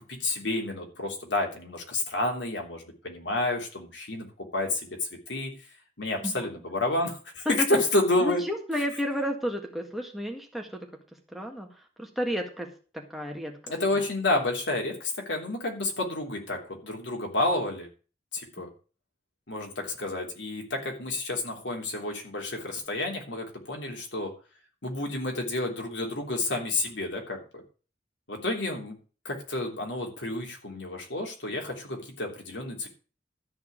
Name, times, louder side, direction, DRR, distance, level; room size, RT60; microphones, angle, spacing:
voice 1, 0.0-4.3 4.5-5.5 6.0-8.4 13.7-17.9 18.3-18.7 19.5-24.3 24.8-27.6 28.3-29.0 29.2-32.9, left 2 dB, 85° left, 1 dB, 3.2 m, -30 dB
voice 2, 7.5-7.8 8.2-10.9 11.3-12.7 12.9-13.7, equal, ahead, 2 dB, 1.8 m, -32 dB
13.0 x 4.8 x 8.7 m, 0.38 s
head